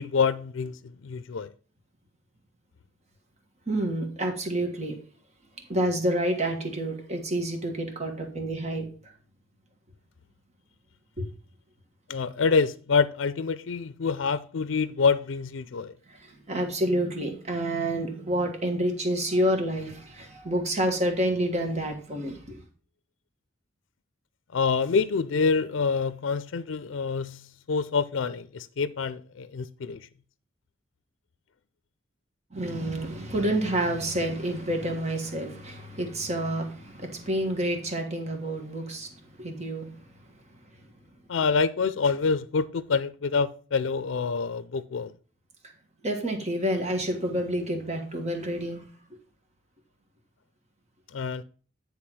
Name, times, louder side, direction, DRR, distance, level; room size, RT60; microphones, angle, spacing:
voice 1, 0.0-1.5 12.1-15.9 24.5-30.1 41.3-45.1 51.1-51.4, left 5 dB, 75° left, 0.4 m, -26 dB
voice 2, 3.7-5.0 5.7-8.9 11.2-11.3 16.1-22.6 32.5-40.0 46.0-48.8, right 1 dB, 35° right, 1.5 m, -28 dB
9.6 x 3.5 x 6.0 m
head